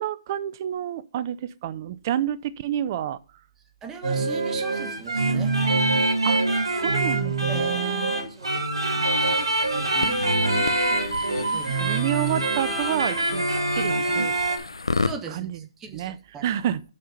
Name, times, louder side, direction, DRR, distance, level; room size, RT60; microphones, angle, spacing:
voice 1, 0.0-3.2 6.2-6.4 6.8-8.1 10.0-10.7 11.5-13.4 13.7-14.4 15.3-15.6 15.9-16.2 16.4-16.8, right 11 dB, 40° right, 0.6 m, -29 dB
voice 2, 3.8-5.6 7.5-7.7 8.4-8.6 8.9-9.1 9.9-10.2 11.5-11.7 15.0-16.4, right 5 dB, 15° right, 1.4 m, -39 dB
sound 1, 4.0-14.6, right 2 dB, 85° right, 2.9 m, -24 dB
sound 2, 9.1-15.1, left 3 dB, 90° left, 0.9 m, -33 dB
7.6 x 5.6 x 6.6 m
hypercardioid pair, 140°, 3 cm